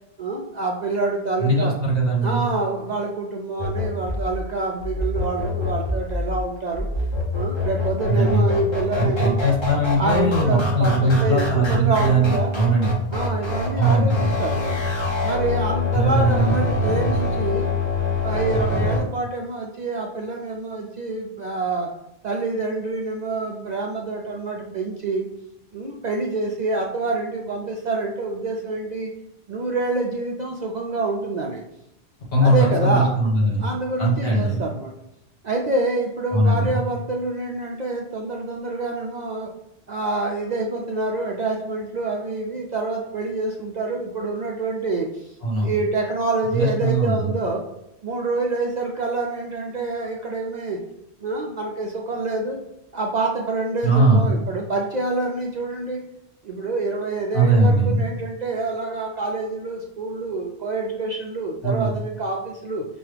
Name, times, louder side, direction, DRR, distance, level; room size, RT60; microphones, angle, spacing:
voice 1, 0.2-1.7 2.2-6.9 7.3-9.4 9.9-12.5 13.1-14.8 15.2-17.7 18.2-21.9 22.2-25.3 25.7-29.1 29.5-31.6 32.4-33.2 33.6-34.9 35.4-39.5 39.9-45.4 45.6-47.6 48.0-50.8 51.2-52.6 52.9-56.0 56.4-62.8, right 3 dB, 55° right, 0 dB, 0.5 m, -26 dB
voice 2, 1.4-2.4 8.1-8.4 8.9-12.9 13.8-14.3 15.9-16.5 32.3-33.6 34.0-34.5 36.3-36.8 45.4-45.7 46.5-47.3 53.8-54.3 57.3-58.0 61.6-61.9, right 2 dB, 60° left, -4 dB, 1.6 m, -20 dB
sound 1, 3.6-19.0, left 2 dB, 30° left, 0.8 m, -25 dB
5.8 x 2.3 x 3.3 m, 0.85 s
omnidirectional pair, 1.1 m